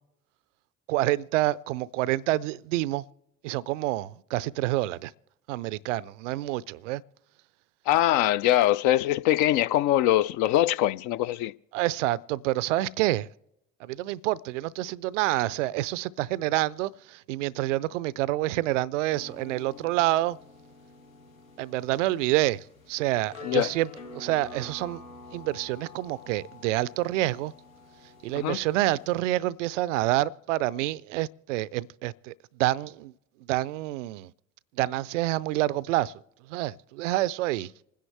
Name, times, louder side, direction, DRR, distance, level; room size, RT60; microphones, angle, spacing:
voice 1, 0.9-3.0 3.4-5.1 5.5-7.0 11.7-13.3 13.8-20.4 21.6-23.9 24.1-25.0 25.3-27.5 28.2-33.1 33.5-34.3 34.8-36.1 36.5-37.7, right 16 dB, 65° right, 0.5 m, -27 dB
voice 2, 7.9-11.5 23.4-23.7 28.3-28.6, left 13 dB, 50° left, 0.5 m, -23 dB
sound 1, 19.1-29.2, left 3 dB, 80° left, 1.3 m, -48 dB
27.5 x 10.0 x 3.3 m
figure-of-eight pair, 55°, 40 cm